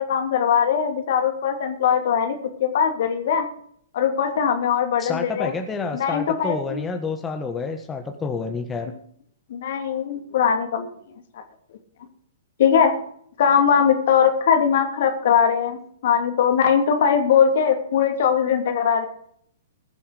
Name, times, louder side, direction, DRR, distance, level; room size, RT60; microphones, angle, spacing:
voice 1, 0.0-3.5 3.9-5.5 5.9-6.8 9.5-10.9 11.3-11.4 12.6-12.9 13.4-19.1, left 7 dB, 55° left, 5 dB, 2.7 m, -20 dB
voice 2, 5.0-8.9, left 4 dB, 15° left, 4 dB, 1.4 m, -29 dB
20.5 x 7.1 x 5.0 m, 0.65 s
figure-of-eight pair, 110°, 0 cm